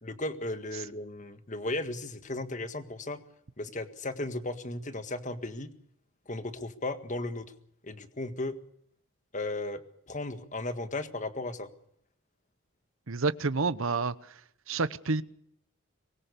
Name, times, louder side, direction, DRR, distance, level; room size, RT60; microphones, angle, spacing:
voice 1, 0.0-3.2 3.6-5.7 6.3-7.5 7.8-8.6 9.3-9.8 10.1-11.7, left 2 dB, 35° left, 1.8 m, -35 dB
voice 2, 13.1-14.3 14.7-15.2, right 3 dB, 65° right, 0.9 m, -29 dB
24.5 x 20.5 x 6.9 m
head